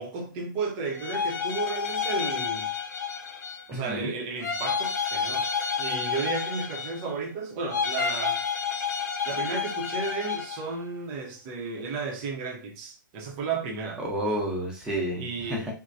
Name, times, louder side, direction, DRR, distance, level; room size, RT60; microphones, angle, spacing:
voice 1, 0.0-2.7 3.7-5.5 5.8-8.4 9.3-14.0 15.1-15.7, right 4 dB, 35° right, 0.7 m, -33 dB
sound 1, 0.9-3.8 4.4-7.2 7.7-10.7, left 6 dB, 50° left, 0.6 m, -30 dB
voice 2, 3.7-4.1 14.0-15.7, right 1 dB, 5° right, 0.9 m, -30 dB
3.0 x 2.2 x 2.6 m
figure-of-eight pair, 120°, 11 cm